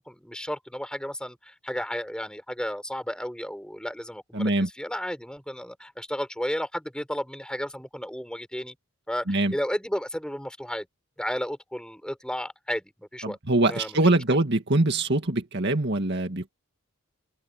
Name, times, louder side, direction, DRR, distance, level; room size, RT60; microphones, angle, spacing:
voice 1, 0.0-8.7 9.1-10.9 11.2-13.4 13.7-14.0 14.3-14.4, equal, 5° left, 7.2 m, -33 dB
voice 2, 4.3-4.7 9.3-9.5 13.2-16.5, right 2 dB, 50° right, 2.0 m, -23 dB
open air
head